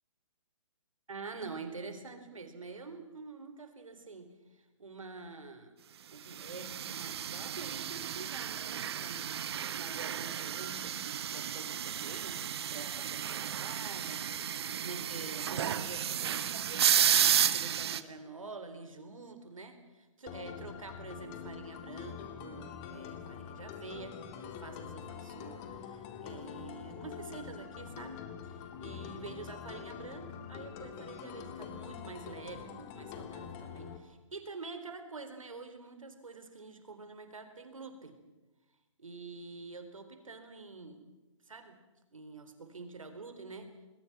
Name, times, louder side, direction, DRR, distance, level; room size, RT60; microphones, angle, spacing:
voice 1, 1.1-5.7 6.1-11.0 11.3-38.1 39.0-41.0 41.5-41.8 42.1-43.7, right 4 dB, 85° right, 7 dB, 4.1 m, -47 dB
sound 1, 6.4-18.0, right 9 dB, 50° right, 1.2 m, -32 dB
sound 2, 20.3-34.0, left 8 dB, 30° left, 2.4 m, -45 dB
25.5 x 21.5 x 6.1 m, 1.1 s
hypercardioid pair, 140°, 17 cm